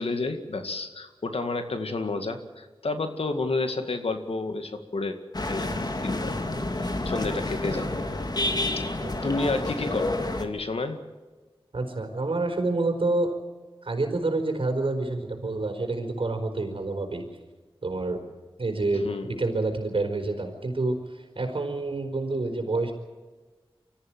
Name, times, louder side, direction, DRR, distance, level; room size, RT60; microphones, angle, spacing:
voice 1, 0.0-5.2 5.5-5.7 6.0-6.5 6.8-7.9 9.2-11.0 18.9-19.4, left 3 dB, 85° left, 7 dB, 2.1 m, -30 dB
sound 1, 5.3-10.5, left 2 dB, 45° left, 2.3 m, -29 dB
voice 2, 9.0-9.4 11.7-13.3 13.8-17.2 17.8-18.2 18.6-22.9, right 2 dB, 65° right, 4 dB, 4.7 m, -28 dB
25.0 x 14.5 x 9.2 m, 1.3 s
wide cardioid pair, 60°, 10 cm